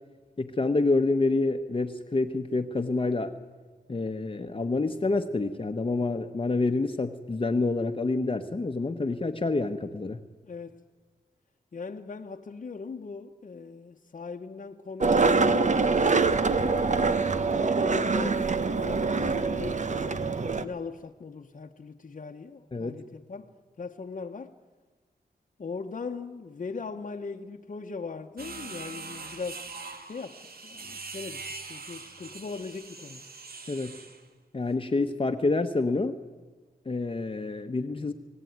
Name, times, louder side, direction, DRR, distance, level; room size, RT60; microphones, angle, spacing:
voice 1, 0.4-3.3 3.9-10.2 22.7-23.0 33.7-34.0 34.5-36.2 36.9-38.1, left 3 dB, 35° left, 5 dB, 1.1 m, -27 dB
voice 2, 10.4-10.8 11.7-15.7 16.6-20.3 20.6-23.5 23.8-24.5 25.6-29.7 30.0-33.2, left 4 dB, 50° left, 0 dB, 1.1 m, -40 dB
Skateboard, 15.0-20.6, right 4 dB, 50° right, 1.2 m, -24 dB
sound 1, 28.4-34.2, right 4 dB, 70° right, 2.2 m, -42 dB
28.5 x 18.5 x 9.4 m, 1.4 s
wide cardioid pair, 110°, 16 cm